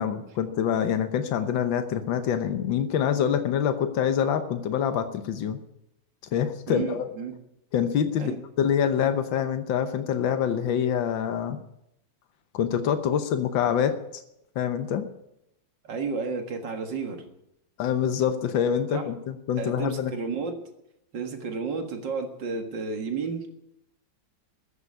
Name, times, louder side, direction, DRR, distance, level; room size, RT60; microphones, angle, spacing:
voice 1, 0.0-5.6 6.3-7.1 7.7-11.6 12.5-14.2 14.6-15.1 17.8-20.1, left 8 dB, 85° left, 9 dB, 1.7 m, -26 dB
voice 2, 6.7-7.3 8.2-8.4 15.8-17.2 18.9-19.1 19.6-20.6 21.1-23.5, right 5 dB, 70° right, 4 dB, 2.5 m, -32 dB
14.5 x 8.2 x 9.5 m, 0.82 s
omnidirectional pair, 2.0 m